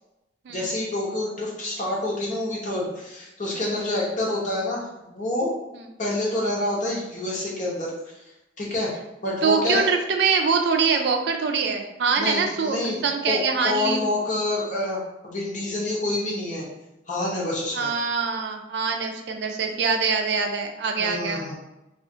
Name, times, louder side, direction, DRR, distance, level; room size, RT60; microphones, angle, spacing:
voice 1, 0.5-5.5 6.0-7.9 8.6-8.9 9.2-9.9 12.2-13.4 13.6-16.7 17.1-17.9 21.0-21.6, left 2 dB, 45° left, -4 dB, 0.9 m, -27 dB
voice 2, 9.4-14.1 17.7-21.6, right 5 dB, 70° right, 4 dB, 0.4 m, -24 dB
2.5 x 2.4 x 3.7 m, 0.96 s
head